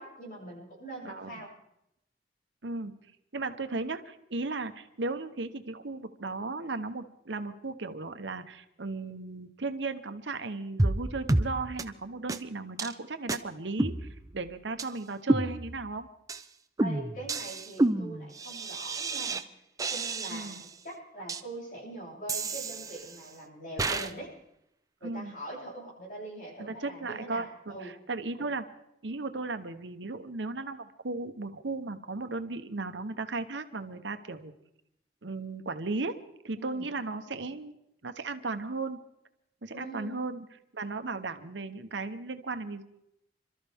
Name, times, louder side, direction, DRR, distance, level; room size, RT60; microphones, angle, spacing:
voice 1, 0.0-1.5 16.8-19.4 19.9-24.3 25.0-27.9 28.4-28.5 36.6-36.8 39.7-40.2, right 1 dB, 50° left, -4 dB, 7.4 m, -43 dB
voice 2, 1.0-1.4 2.6-2.9 3.3-16.1 20.3-20.6 25.0-25.3 26.6-28.6 29.0-34.5 35.2-36.2 36.4-37.8 38.0-39.0 39.6-40.5 40.7-42.8, right 3 dB, 85° right, 9 dB, 1.0 m, -36 dB
sound 1, 10.8-11.0 11.3-11.5 11.8-11.9 12.3-12.4 12.8-12.9 13.3-13.4 13.8-14.4 14.8-14.9 15.3-15.9 16.3-16.4 16.8-19.4 19.8-20.7 21.3-21.4 22.3-23.3 23.8-24.1, right 2 dB, 20° right, 0.6 m, -30 dB
27.5 x 13.0 x 3.6 m, 0.80 s
head